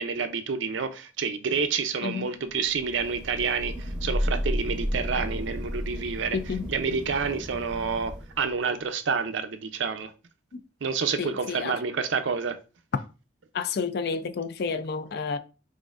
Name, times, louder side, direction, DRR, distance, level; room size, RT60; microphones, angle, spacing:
voice 1, 0.0-6.4 6.7-10.1 10.8-12.6, right 5 dB, 65° right, 0.5 m, -28 dB
Thunder / Rain, 2.7-8.5, equal, 5° right, 0.7 m, -32 dB
voice 2, 6.3-6.7 10.5-10.6 11.2-11.8 13.5-15.4, left 5 dB, 55° left, 0.3 m, -30 dB
6.2 x 2.6 x 2.4 m
head